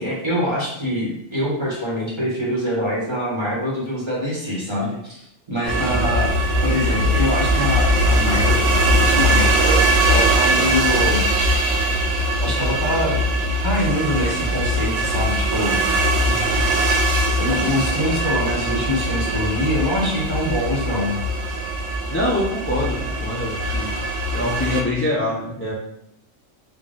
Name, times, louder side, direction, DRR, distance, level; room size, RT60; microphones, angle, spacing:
voice 1, 0.0-6.3 6.6-11.2 12.4-13.2 13.6-15.8 17.4-21.2, left 1 dB, 25° right, -6 dB, 1.0 m, -24 dB
sound 1, 5.6-24.8, right 1 dB, 80° right, 0.9 m, -20 dB
voice 2, 22.1-23.9 24.3-25.7, left 1 dB, 15° left, -5 dB, 0.4 m, -25 dB
3.8 x 2.2 x 3.7 m, 0.75 s
omnidirectional pair, 1.2 m